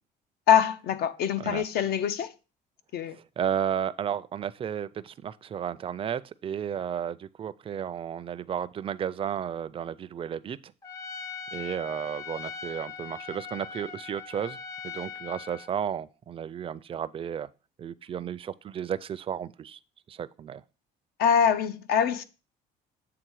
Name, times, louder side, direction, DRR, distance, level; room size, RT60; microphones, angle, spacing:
voice 1, 0.5-2.3 2.9-3.2 21.2-22.2, left 8 dB, 70° left, 0.7 m, -24 dB
voice 2, 3.1-10.6 11.5-14.6 14.8-17.5 17.8-19.8 20.1-20.6, right 8 dB, 35° right, 0.4 m, -33 dB
Trumpet, 10.8-15.7, left 6 dB, 20° left, 0.6 m, -40 dB
7.8 x 3.6 x 4.6 m
cardioid pair, 110°, 17 cm